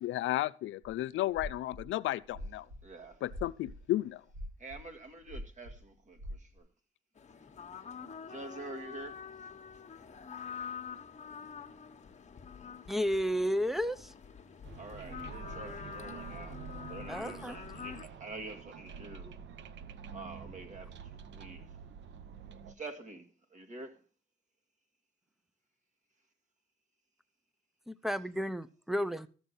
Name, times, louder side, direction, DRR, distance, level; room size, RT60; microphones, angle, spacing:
voice 1, 0.0-2.7 3.2-4.2, left 15 dB, 80° left, 0.5 m, -33 dB
sound 1, 0.8-0.9 1.3-1.9 2.3-3.8 4.3-4.9 5.2-5.8 6.1-6.6, equal, 90° right, 5.4 m, -43 dB
voice 2, 2.8-3.2 4.6-6.7 8.3-9.2 14.7-16.6 16.9-19.4 20.1-21.8 22.7-24.0, right 2 dB, 40° right, 2.1 m, -47 dB
sound 2, 7.2-18.0, left 6 dB, 35° left, 1.4 m, -46 dB
voice 3, 12.9-14.1 17.1-17.6 27.9-29.3, equal, ahead, 0.7 m, -32 dB
sound 3, 14.6-22.7, right 7 dB, 65° right, 0.9 m, -48 dB
13.5 x 7.0 x 5.5 m
cardioid pair, 90°, 20 cm